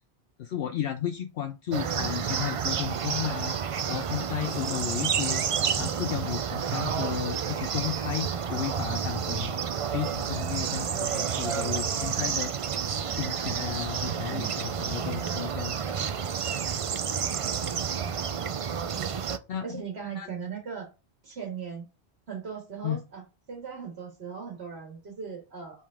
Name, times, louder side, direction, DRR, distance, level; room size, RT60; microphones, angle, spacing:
voice 1, 0.4-5.4 5.8-9.5 9.9-12.5 13.1-15.8 19.5-19.8 20.1-20.3 22.8-23.0, left 10 dB, 65° left, 0.7 m, -33 dB
sound 1, 1.7-19.4, right 7 dB, 50° right, 0.4 m, -30 dB
voice 2, 14.3-14.7 18.9-19.4 19.6-20.9 21.2-21.8 22.3-25.9, right 6 dB, 75° right, 1.9 m, -39 dB
5.5 x 5.1 x 3.6 m
omnidirectional pair, 1.1 m